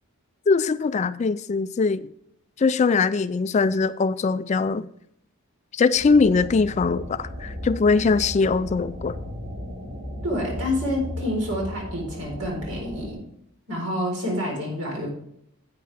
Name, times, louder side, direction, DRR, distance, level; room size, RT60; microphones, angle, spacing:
voice 1, 0.5-2.1 2.6-4.9 5.7-9.2, left 4 dB, 30° left, 0.3 m, -21 dB
sound 1, 5.9-13.1, left 1 dB, 20° right, 4.4 m, -35 dB
voice 2, 10.2-13.2 13.7-15.1, left 1 dB, 80° right, 4.2 m, -28 dB
10.5 x 8.7 x 3.4 m
head